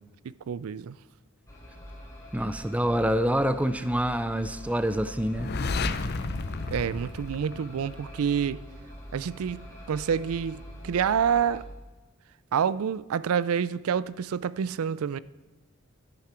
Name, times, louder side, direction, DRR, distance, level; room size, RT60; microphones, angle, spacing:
voice 1, 0.2-1.0 6.7-8.6 9.1-9.6 9.9-11.6 12.5-15.2, right 7 dB, 80° right, 0.4 m, -28 dB
sound 1, 1.5-11.7, equal, 15° left, 3.0 m, -44 dB
voice 2, 2.3-5.5 9.1-9.2, equal, 5° right, 0.4 m, -26 dB
sound 2, 5.2-8.1, left 3 dB, 50° left, 0.6 m, -32 dB
12.5 x 11.0 x 4.4 m
head